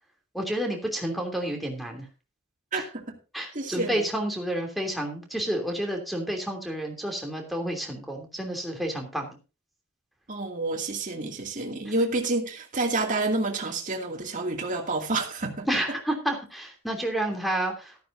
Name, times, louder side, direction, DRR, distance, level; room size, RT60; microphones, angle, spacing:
voice 1, 0.3-2.1 2.7-2.8 3.3-9.4 15.7-18.0, right 1 dB, ahead, 3.0 m, -30 dB
voice 2, 2.7-3.2 3.5-4.1 10.3-15.7, right 2 dB, 35° right, 2.4 m, -29 dB
13.5 x 13.5 x 2.7 m
head